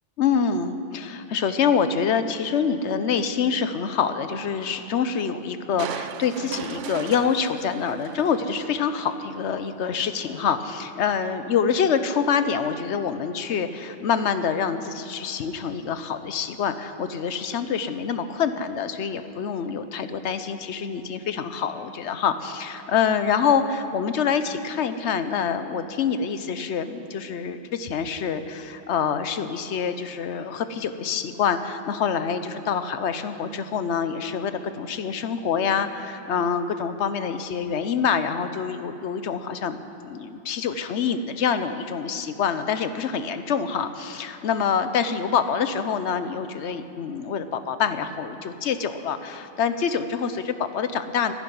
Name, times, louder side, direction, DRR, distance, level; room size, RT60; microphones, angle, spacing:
voice 1, 0.2-39.8 40.0-51.3, left 6 dB, 75° left, 10 dB, 1.0 m, -26 dB
Crushing, 5.8-9.2 9.6-9.7, right 10 dB, 85° right, 0.9 m, -37 dB
11.5 x 10.5 x 9.3 m, 2.9 s
omnidirectional pair, 1.2 m